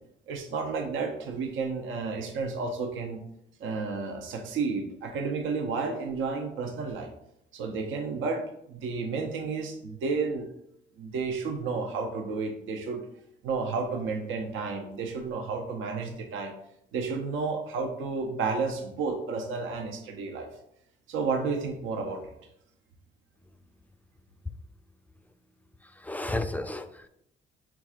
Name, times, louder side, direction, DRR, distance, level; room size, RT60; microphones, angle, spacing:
voice 1, 0.3-3.2 3.6-7.1 7.5-10.5 11.0-13.0 13.4-16.5 16.9-20.5 21.1-22.3, right 4 dB, 80° right, 4 dB, 0.7 m, -31 dB
voice 2, 25.8-27.1, left 2 dB, 10° left, 8 dB, 0.3 m, -33 dB
5.9 x 3.6 x 2.4 m, 0.76 s
cardioid pair, 90°, 20 cm